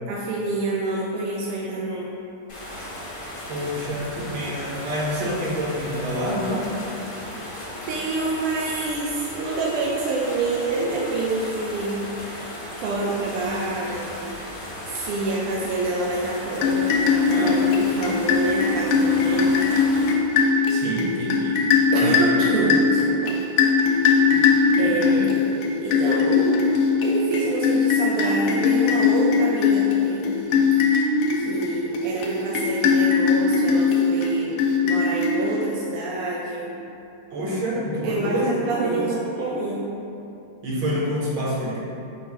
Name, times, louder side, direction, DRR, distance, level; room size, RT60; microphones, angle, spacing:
voice 1, 0.1-2.2 7.9-12.0 12.8-14.3 14.8-19.5 21.9-23.4 24.8-25.4 25.8-26.5 27.0-30.4 31.4-36.7 38.0-39.9, right 2 dB, 85° right, -5 dB, 1.5 m, -27 dB
sound 1, 2.5-20.1, left 1 dB, 60° left, 0.5 m, -36 dB
voice 2, 3.5-6.6 17.3-17.6 18.0-18.1 19.2-19.4 20.7-21.6 24.3-24.4 24.8-25.3 37.3-38.5 38.8-39.1 40.6-41.8, equal, 70° right, -5 dB, 1.4 m, -27 dB
sound 2, 16.6-35.8, left 5 dB, 80° left, 1.4 m, -21 dB
5.7 x 2.0 x 4.4 m, 2.8 s
omnidirectional pair, 2.4 m